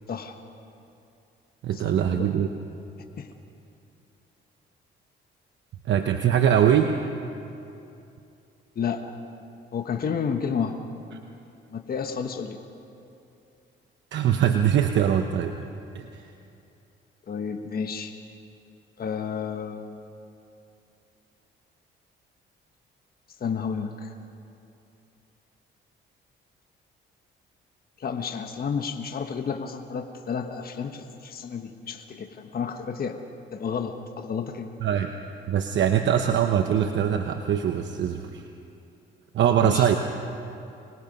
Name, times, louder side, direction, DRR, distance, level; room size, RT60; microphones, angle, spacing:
voice 1, 1.6-2.5 5.8-7.0 14.1-15.5 15.9-16.3 34.8-35.1 35.5-38.5 39.3-40.0, right 9 dB, 65° right, 5 dB, 1.0 m, -22 dB
voice 2, 8.7-9.2 9.7-10.7 11.7-12.6 17.3-18.1 19.0-20.0 23.4-24.1 28.0-33.2 33.5-34.7 39.6-39.9, left 6 dB, 50° left, 5 dB, 1.3 m, -31 dB
25.5 x 20.5 x 5.4 m, 2.7 s
cardioid pair, 90°, 20 cm